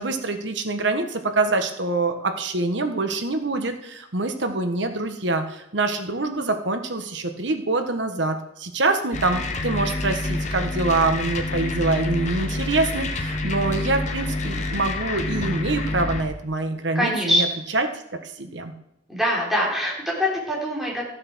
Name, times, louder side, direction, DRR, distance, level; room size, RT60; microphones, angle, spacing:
voice 1, 0.0-17.5 17.7-17.9 18.2-18.7, right 3 dB, 75° right, 6 dB, 1.4 m, -25 dB
sound 1, 9.1-16.2, left 2 dB, 40° left, 1.3 m, -27 dB
voice 2, 16.9-17.4 19.1-21.1, equal, ahead, -4 dB, 4.1 m, -23 dB
14.0 x 7.6 x 6.3 m, 0.79 s
head